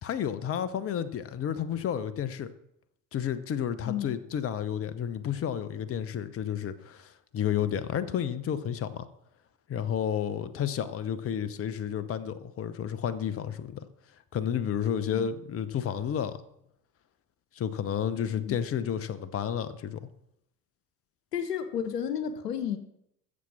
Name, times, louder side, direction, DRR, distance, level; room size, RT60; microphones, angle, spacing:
voice 1, 0.0-2.5 3.1-9.1 9.7-13.9 14.3-16.4 17.6-20.0, left 9 dB, 30° left, 1.0 m, -31 dB
voice 2, 3.8-4.2 15.1-15.3 18.4-18.6 21.3-22.8, left 8 dB, 75° left, 1.1 m, -32 dB
14.5 x 7.4 x 6.0 m
figure-of-eight pair, 65°, 47 cm